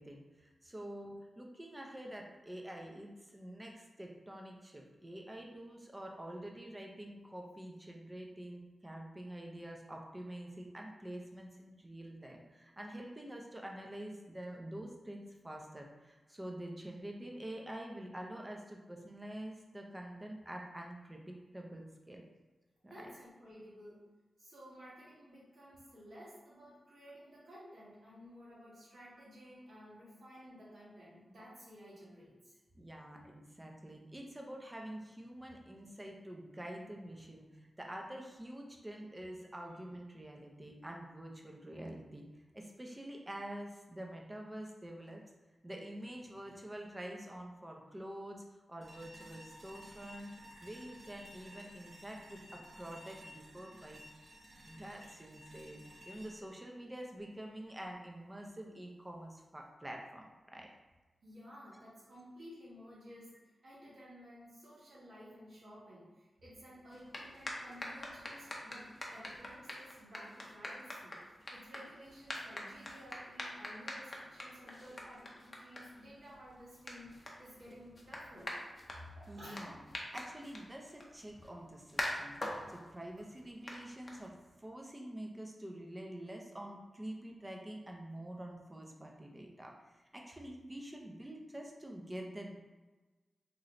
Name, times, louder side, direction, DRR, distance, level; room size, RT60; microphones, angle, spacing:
voice 1, 0.0-22.2 22.8-23.1 32.7-42.3 42.5-45.2 45.6-48.4 48.7-50.3 50.6-54.1 54.6-60.7 79.3-79.8 80.1-82.4 82.7-84.3 84.6-92.5, right 1 dB, 20° right, 0 dB, 0.5 m, -47 dB
voice 2, 22.8-24.0 24.4-32.6 61.2-63.4 63.6-78.5 79.2-79.8, equal, 75° right, -8 dB, 1.5 m, -54 dB
sound 1, 48.8-57.8, equal, 50° right, 0.8 m, -55 dB
sound 2, 66.9-84.6, left 1 dB, 40° left, 0.6 m, -46 dB
3.0 x 3.0 x 2.5 m, 1.2 s
cardioid pair, 75°, 0 cm